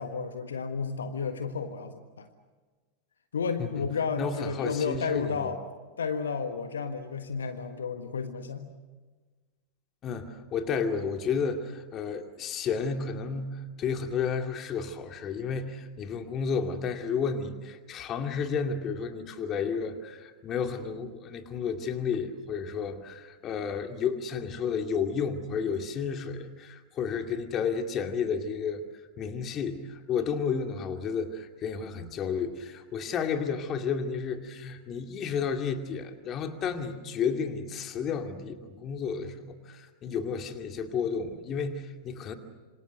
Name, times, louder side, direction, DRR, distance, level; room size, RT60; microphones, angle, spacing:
voice 1, 0.0-2.3 3.3-5.6 6.0-8.7, left 5 dB, 70° left, 8 dB, 1.5 m, -32 dB
voice 2, 4.2-5.5 10.0-28.8 29.2-42.4, left 6 dB, 30° left, 5 dB, 2.4 m, -32 dB
27.0 x 26.5 x 6.6 m, 1.3 s
figure-of-eight pair, 90°, 0 cm